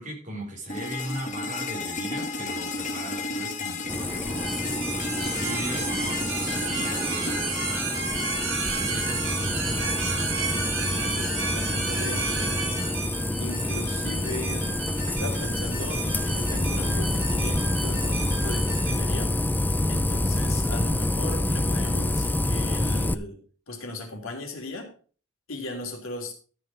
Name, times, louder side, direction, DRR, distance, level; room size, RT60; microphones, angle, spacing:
voice 1, 0.0-8.3 8.7-9.9, equal, 40° right, 0 dB, 4.6 m, -39 dB
sound 1, 0.7-8.7, left 3 dB, 35° left, 1.7 m, -33 dB
sound 2, 3.9-23.1, left 1 dB, 10° left, 0.5 m, -27 dB
sound 3, 4.4-19.0, right 4 dB, 65° right, 5.3 m, -32 dB
voice 2, 11.0-12.6 13.4-14.8 15.1-19.4 19.9-24.9 25.5-26.3, left 2 dB, 75° left, 2 dB, 3.2 m, -37 dB
13.5 x 6.9 x 4.9 m, 0.40 s
head